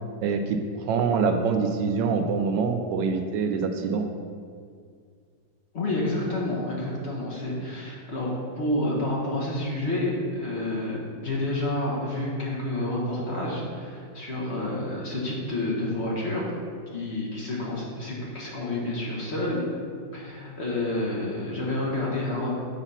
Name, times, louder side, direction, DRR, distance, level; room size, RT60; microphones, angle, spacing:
voice 1, 0.2-4.0, right 5 dB, 80° right, 6 dB, 1.2 m, -25 dB
voice 2, 5.7-8.3 8.6-16.5 16.9-19.6 20.1-22.6, left 1 dB, 40° left, -4 dB, 1.3 m, -29 dB
7.0 x 4.0 x 5.6 m, 2.1 s
omnidirectional pair, 2.0 m